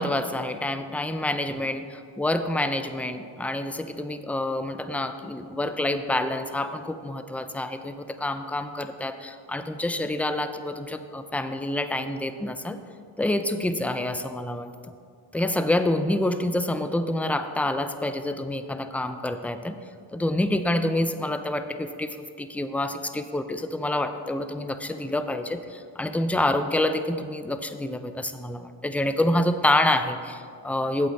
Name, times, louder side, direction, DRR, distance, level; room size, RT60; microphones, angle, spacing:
voice 1, 0.0-1.8 2.2-12.8 13.2-14.7 15.3-19.8 20.1-31.1, left 1 dB, 5° left, 9 dB, 0.4 m, -27 dB
8.4 x 7.9 x 4.2 m, 2.2 s
cardioid pair, 80°, 47 cm